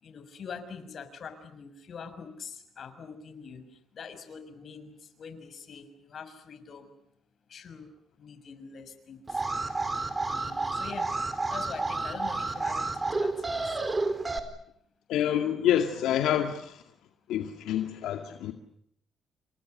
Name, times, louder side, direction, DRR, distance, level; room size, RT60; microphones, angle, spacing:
voice 1, 0.0-3.6 3.9-6.9 7.5-7.9 8.2-9.4 10.3-11.1 11.5-13.8, left 6 dB, 55° left, 6.2 m, -44 dB
Alarm, 9.3-14.4, right 3 dB, 25° right, 4.3 m, -30 dB
voice 2, 15.1-16.8 17.3-18.5, left 10 dB, 85° left, 2.2 m, -27 dB
30.0 x 26.0 x 6.7 m
cardioid pair, 90°, 0 cm